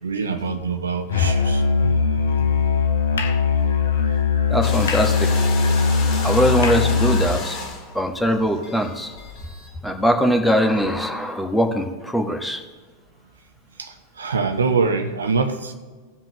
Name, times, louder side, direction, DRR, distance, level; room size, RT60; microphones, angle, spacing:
voice 1, 0.0-1.9 2.4-2.5 13.8-15.7, right 4 dB, 70° right, 7 dB, 1.0 m, -24 dB
Musical instrument, 1.1-7.4, left 5 dB, 65° left, 0.9 m, -20 dB
voice 2, 4.5-5.4 6.2-7.6 7.9-9.1 9.8-12.6, equal, 5° left, 4 dB, 1.4 m, -21 dB
sound 1, 4.6-9.8, left 3 dB, 40° left, 2.6 m, -33 dB
19.0 x 7.6 x 3.1 m, 1.4 s
figure-of-eight pair, 90°, 0 cm